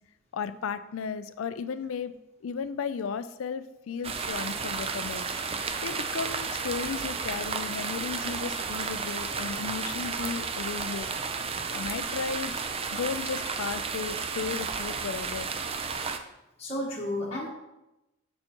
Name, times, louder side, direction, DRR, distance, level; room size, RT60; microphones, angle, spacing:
voice 1, 0.3-2.1 2.4-5.3 5.8-11.1 11.7-12.5 12.9-15.5, left 6 dB, 75° left, 13 dB, 0.4 m, -34 dB
sound 1, 4.0-16.2, right 5 dB, 30° right, 0.4 m, -32 dB
voice 2, 16.6-17.5, left 1 dB, 30° left, -6 dB, 1.2 m, -33 dB
6.9 x 6.4 x 2.9 m, 0.94 s
head